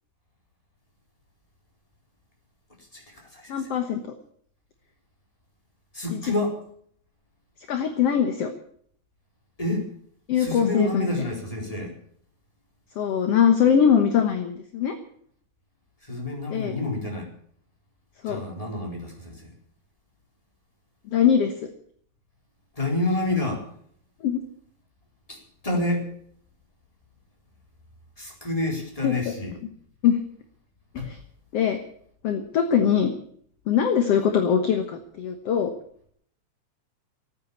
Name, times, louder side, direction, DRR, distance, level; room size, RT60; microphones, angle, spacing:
voice 1, 2.8-3.7 5.9-6.6 9.6-9.9 10.4-11.9 16.0-17.3 18.2-19.5 22.7-23.7 25.3-26.1 28.2-29.5 30.9-31.1, left 2 dB, 10° left, 0 dB, 4.2 m, -28 dB
voice 2, 3.5-4.0 6.1-6.3 7.7-8.5 10.3-11.1 13.0-15.0 16.5-16.8 18.2-18.4 21.1-21.5 24.2-24.4 29.0-29.3 30.0-30.2 31.1-31.2 31.5-31.8 32.2-33.1 33.7-35.7, left 8 dB, 60° left, 6 dB, 2.0 m, -22 dB
17.0 x 9.5 x 8.6 m, 0.62 s
omnidirectional pair, 3.6 m